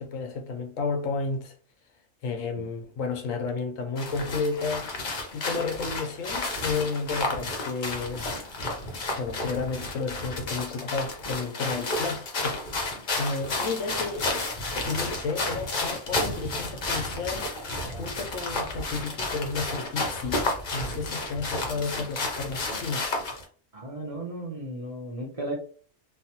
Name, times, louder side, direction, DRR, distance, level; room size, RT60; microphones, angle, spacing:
voice 1, 0.0-1.5 2.2-4.9 5.3-8.3 9.2-12.6 13.2-14.5 14.8-17.5 17.8-23.1, left 4 dB, 85° left, 1.0 m, -32 dB
sound 1, 4.0-23.4, left 2 dB, 45° left, 0.7 m, -31 dB
voice 2, 23.7-25.5, right 1 dB, 35° right, 0.6 m, -35 dB
3.2 x 2.1 x 2.8 m
omnidirectional pair, 1.3 m